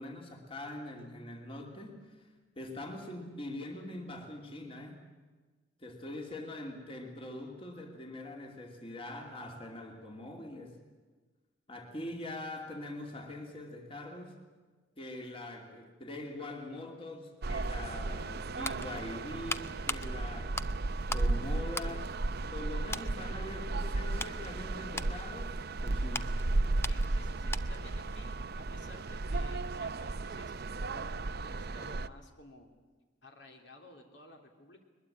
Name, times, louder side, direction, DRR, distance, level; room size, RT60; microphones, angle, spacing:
voice 1, 0.0-5.0 5.8-10.8 11.7-14.4 15.0-20.6 21.1-22.2 22.5-26.4, left 1 dB, 30° left, 2 dB, 2.7 m, -43 dB
sound 1, 17.4-32.1, right 2 dB, 55° right, 0.6 m, -34 dB
sound 2, 18.2-21.3 21.7-22.6 22.9-23.2 23.7-27.9 28.2-28.4, left 3 dB, 15° left, 0.7 m, -41 dB
voice 2, 22.7-23.0 23.6-23.7 26.9-30.5 30.8-32.7 33.2-34.8, left 2 dB, 65° left, 2 dB, 3.3 m, -54 dB
22.0 x 21.5 x 8.7 m, 1.3 s
head